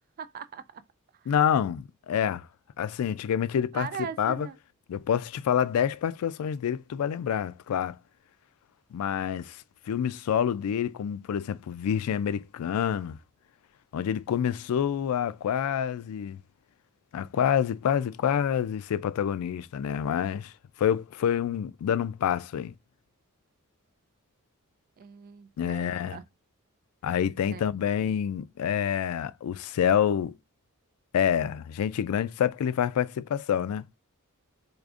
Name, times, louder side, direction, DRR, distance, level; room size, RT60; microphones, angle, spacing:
voice 1, 0.2-0.8 1.1-1.3 3.7-4.6 25.0-26.2 27.5-27.7, right 7 dB, 40° right, 0.3 m, -40 dB
voice 2, 1.3-2.5 2.8-3.9 4.2-4.5 4.9-8.0 8.9-13.2 13.9-16.4 17.1-20.5 20.8-22.7 25.6-26.2 27.0-30.4 31.1-33.8, left 8 dB, 85° left, 0.3 m, -27 dB
4.8 x 2.5 x 2.4 m
head